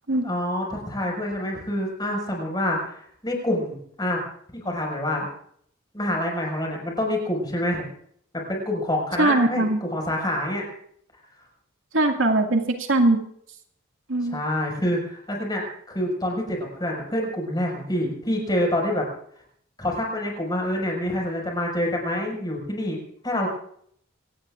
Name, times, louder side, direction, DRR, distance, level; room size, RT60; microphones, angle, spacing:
voice 1, 0.2-4.2 4.5-5.3 5.9-7.9 8.3-10.7 14.3-19.1 19.8-23.5, left 1 dB, 20° left, 0 dB, 5.8 m, -27 dB
voice 2, 9.2-9.8 11.9-13.2 14.1-14.4, right 2 dB, 75° right, 2 dB, 2.1 m, -21 dB
26.5 x 18.0 x 2.6 m, 0.65 s
head